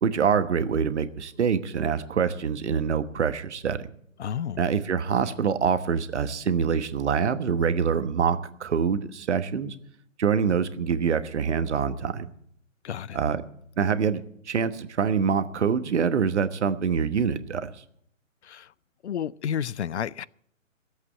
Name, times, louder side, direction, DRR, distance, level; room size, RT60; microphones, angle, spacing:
voice 1, 0.0-3.8 4.6-9.7 10.2-12.3 13.1-13.4 13.8-17.7, right 6 dB, 60° right, 1.2 m, -25 dB
voice 2, 4.2-4.6 12.8-13.2 18.4-18.7 19.0-20.2, left 9 dB, 60° left, 0.5 m, -31 dB
15.0 x 8.1 x 8.4 m
figure-of-eight pair, 140°, 40 cm